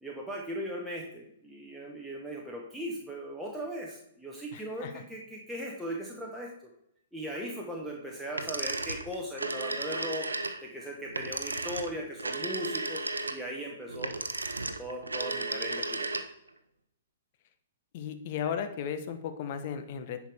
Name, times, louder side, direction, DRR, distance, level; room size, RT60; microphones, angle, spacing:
voice 1, 0.0-6.5 7.1-10.3 10.6-13.0 13.3-14.1 14.8-16.3, equal, ahead, -4 dB, 1.3 m, -38 dB
voice 2, 4.5-5.0 17.9-20.3, left 8 dB, 45° left, 9 dB, 1.0 m, -35 dB
sound 1, 8.3-16.5, right 2 dB, 85° right, 0.7 m, -34 dB
10.5 x 4.9 x 3.5 m, 0.77 s
figure-of-eight pair, 120°, 0 cm